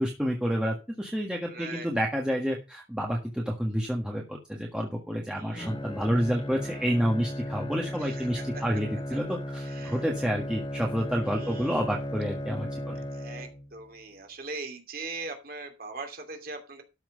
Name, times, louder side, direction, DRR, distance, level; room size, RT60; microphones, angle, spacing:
voice 1, 0.0-13.0, equal, 5° right, -1 dB, 1.6 m, -29 dB
voice 2, 1.5-1.9 5.3-5.8 8.0-8.6 9.6-10.0 11.2-11.8 13.1-16.8, right 3 dB, 50° right, 4 dB, 2.7 m, -41 dB
Bowed string instrument, 5.6-13.9, equal, 25° left, 0.8 m, -36 dB
13.0 x 6.0 x 5.4 m, 0.29 s
head